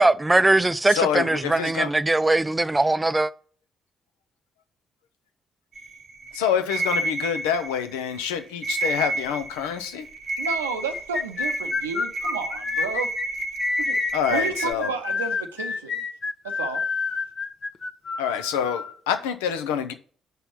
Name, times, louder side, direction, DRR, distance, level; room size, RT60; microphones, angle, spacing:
voice 1, 0.0-3.3, right 2 dB, 15° right, 0.5 m, -20 dB
voice 2, 0.9-1.9 6.3-10.1 14.1-14.9 18.2-19.9, left 8 dB, 75° left, 0.6 m, -26 dB
sound 1, 5.7-14.7, right 2 dB, 50° right, 0.9 m, -31 dB
voice 3, 10.4-13.1 13.9-14.0 14.3-15.9 16.4-16.8, right 5 dB, 80° right, 0.6 m, -31 dB
sound 2, 10.9-19.0, left 5 dB, 40° left, 0.8 m, -28 dB
5.6 x 5.6 x 6.0 m
figure-of-eight pair, 40°, 0 cm